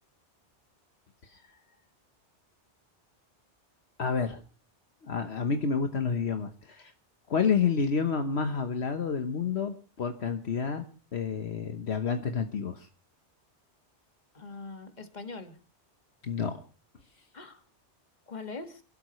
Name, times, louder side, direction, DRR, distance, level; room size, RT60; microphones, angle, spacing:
voice 1, 4.0-4.4 5.0-6.9 7.3-10.8 11.1-12.9 16.2-16.6, left 5 dB, 65° left, 7 dB, 1.4 m, -29 dB
voice 2, 14.3-15.6 17.3-17.6 18.3-18.8, left 3 dB, 40° left, 7 dB, 1.9 m, -42 dB
28.5 x 12.5 x 3.1 m, 0.35 s
omnidirectional pair, 1.2 m